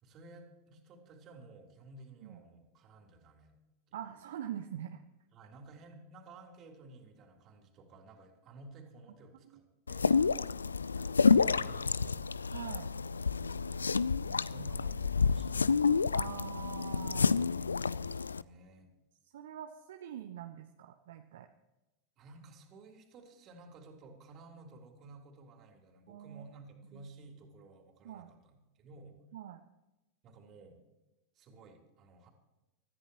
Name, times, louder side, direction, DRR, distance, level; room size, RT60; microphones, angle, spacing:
voice 1, 0.0-3.6 3.9-4.0 5.3-12.3 14.2-15.7 17.3-17.8 18.1-18.9 22.2-29.2 30.2-30.8 31.3-32.3, right 3 dB, 30° right, 3 dB, 3.4 m, -54 dB
voice 2, 3.9-5.0 12.5-12.9 16.1-17.3 19.3-21.5 26.1-26.4 26.9-27.1 28.0-28.3 29.3-29.6, right 10 dB, 60° right, 6 dB, 0.9 m, -44 dB
sound 1, 9.9-18.4, left 5 dB, 75° left, 0.4 m, -29 dB
25.0 x 14.0 x 3.0 m, 1.0 s
figure-of-eight pair, 90°, 0 cm